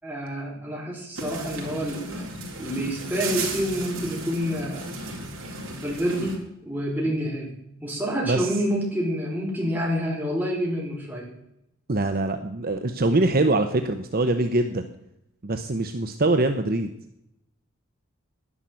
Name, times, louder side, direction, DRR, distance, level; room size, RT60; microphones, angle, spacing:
voice 1, 0.0-2.3 2.6-4.8 5.8-6.4 6.6-7.5 7.8-11.3, equal, 10° right, -2 dB, 4.6 m, -28 dB
sound 1, 1.2-6.4, right 2 dB, 60° right, 3.8 m, -34 dB
voice 2, 11.9-14.8 15.4-16.9, right 2 dB, 45° right, 8 dB, 0.8 m, -23 dB
11.0 x 11.0 x 7.6 m, 0.80 s
head